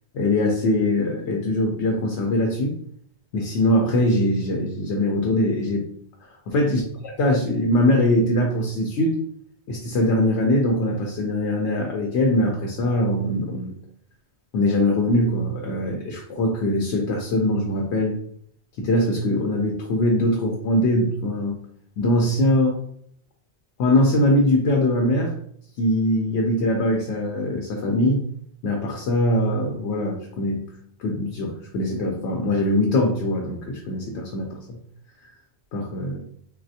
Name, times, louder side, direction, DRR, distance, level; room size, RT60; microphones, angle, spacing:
voice 1, 0.1-2.7 3.3-5.9 6.2-6.8 7.2-9.2 9.7-13.7 14.5-18.2 18.8-21.6 22.0-22.8 23.8-25.3 25.8-28.2 28.6-30.6 31.0-34.8 35.7-36.2, left 1 dB, 80° left, 0 dB, 0.9 m, -22 dB
3.2 x 2.3 x 2.7 m, 0.65 s
omnidirectional pair, 1.1 m